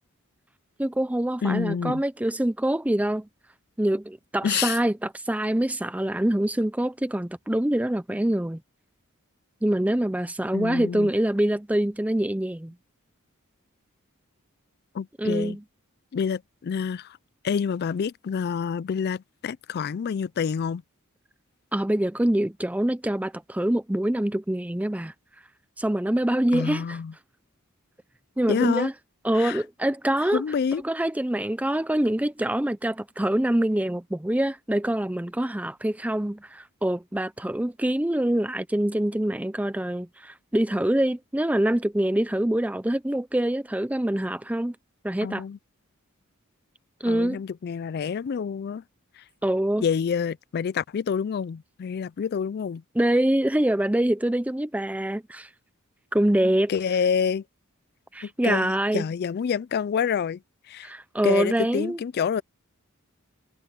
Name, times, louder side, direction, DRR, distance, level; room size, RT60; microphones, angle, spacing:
voice 1, 0.8-3.3 3.8-8.6 9.6-12.7 15.2-15.6 21.7-25.1 25.8-27.0 28.4-28.9 29.2-30.4 30.8-44.8 45.0-45.4 47.0-47.4 49.4-49.8 53.0-55.5 56.1-56.7 58.1-59.0 60.8-62.0, right 1 dB, 5° right, 0.5 m, -25 dB
voice 2, 1.4-2.0 4.4-4.8 10.5-11.1 14.9-15.6 16.1-17.2 17.4-20.8 26.5-27.1 28.5-28.9 29.3-29.6 30.3-30.8 45.2-45.6 47.1-48.8 49.2-49.3 49.8-52.8 56.7-57.4 58.2-60.4 60.7-60.9 61.2-62.4, left 6 dB, 45° left, 0.3 m, -27 dB
head